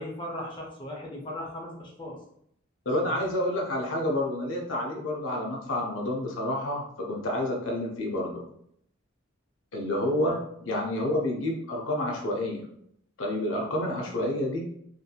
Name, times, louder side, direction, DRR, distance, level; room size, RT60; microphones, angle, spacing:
voice 1, 0.0-2.1 3.1-3.3 10.3-10.4, left 1 dB, 25° left, -2 dB, 0.6 m, -38 dB
voice 2, 2.9-8.4 9.7-12.7 13.2-14.6, left 1 dB, 65° left, 0 dB, 0.5 m, -29 dB
2.7 x 2.6 x 2.3 m, 0.70 s
head